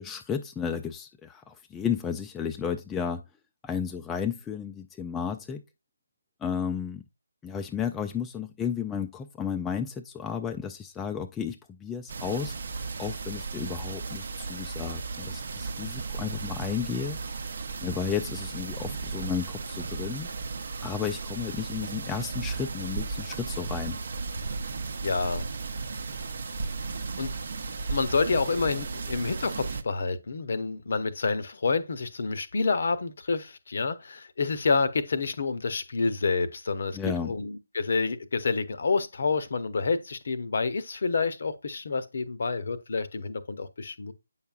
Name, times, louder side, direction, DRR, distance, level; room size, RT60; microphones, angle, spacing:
voice 1, 0.0-3.2 3.6-5.6 6.4-7.0 7.4-12.5 13.0-17.2 17.8-20.3 20.8-24.0 36.9-37.3, left 7 dB, 10° left, 0.3 m, -33 dB
sound 1, 12.1-29.8, right 4 dB, 50° right, 0.7 m, -35 dB
voice 2, 25.0-25.5 27.2-27.3 27.9-37.0 37.2-44.1, left 4 dB, 50° left, 0.7 m, -28 dB
8.4 x 5.7 x 2.4 m
figure-of-eight pair, 150°, 0 cm